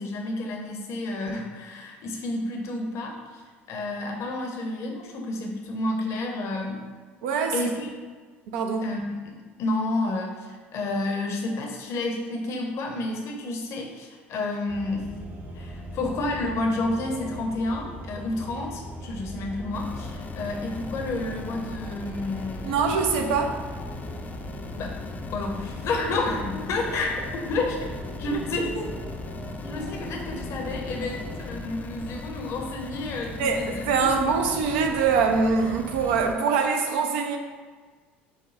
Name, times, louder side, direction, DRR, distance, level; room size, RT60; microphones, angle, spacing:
voice 1, 0.0-3.4 3.7-6.8 7.5-7.9 8.8-9.3 9.6-15.1 15.5-22.9 24.8-25.0 25.3-27.8 28.2-28.9 29.6-34.1, left 2 dB, 50° left, 1 dB, 0.7 m, -30 dB
voice 2, 7.2-7.5 8.5-8.9 22.6-23.6 33.4-37.4, right 5 dB, 70° right, 4 dB, 0.5 m, -23 dB
sound 1, 14.7-31.6, right 1 dB, 30° right, 0.7 m, -40 dB
sound 2, 19.7-36.4, left 4 dB, 25° left, 0.4 m, -38 dB
5.0 x 2.2 x 3.9 m, 1.5 s
hypercardioid pair, 65°, 6 cm